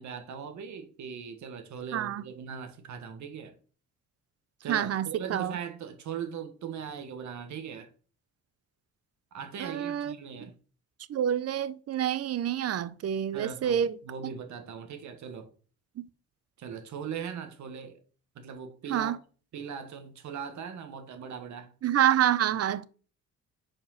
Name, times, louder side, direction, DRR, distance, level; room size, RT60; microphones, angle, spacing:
voice 1, 0.0-3.5 4.6-7.9 9.3-10.5 13.3-15.5 16.6-18.0 18.3-19.1 19.5-21.7, right 7 dB, 70° right, 1.5 m, -39 dB
voice 2, 1.9-2.2 4.7-5.6 9.6-10.2 11.1-14.0 16.0-16.1 18.9-19.2 21.8-22.9, right 10 dB, 55° right, 0.6 m, -27 dB
5.3 x 5.0 x 5.7 m
cardioid pair, 90°, 30 cm